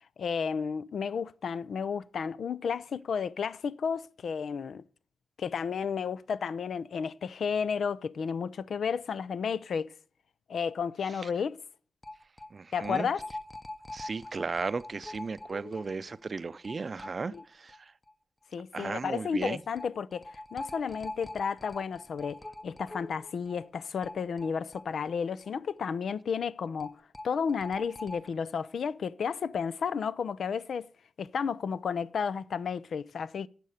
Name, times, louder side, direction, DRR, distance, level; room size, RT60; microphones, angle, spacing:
voice 1, 0.2-4.8 5.4-9.9 10.5-11.6 12.7-13.2 17.3-17.4 18.5-20.2 20.5-30.9 31.2-33.5, left 6 dB, 80° left, 0.6 m, -32 dB
sound 1, 10.7-10.8 11.0-11.1 12.0-17.8 18.1-18.2 19.4-25.5 25.8-25.9 26.8-28.3, left 2 dB, 20° left, 0.9 m, -44 dB
voice 2, 12.5-13.1 13.9-17.9 18.7-19.6, right 4 dB, 50° right, 0.5 m, -35 dB
12.5 x 7.6 x 6.5 m
cardioid pair, 80°, 0 cm